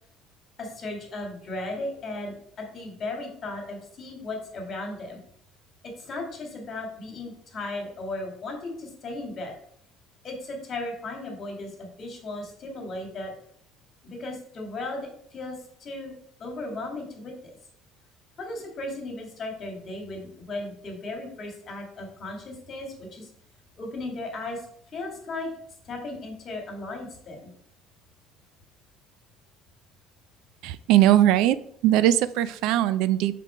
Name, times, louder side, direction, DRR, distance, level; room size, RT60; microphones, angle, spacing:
voice 1, 0.6-5.2 6.0-9.5 10.2-13.3 14.0-16.1 16.4-17.5 18.4-23.3 23.8-24.6 24.9-25.5 25.9-27.5, left 2 dB, 35° left, 1 dB, 1.8 m, -36 dB
voice 2, 30.6-31.6 31.8-33.3, right 13 dB, 70° right, 15 dB, 0.3 m, -20 dB
5.5 x 3.7 x 4.8 m, 0.68 s
cardioid pair, 155°, 0 cm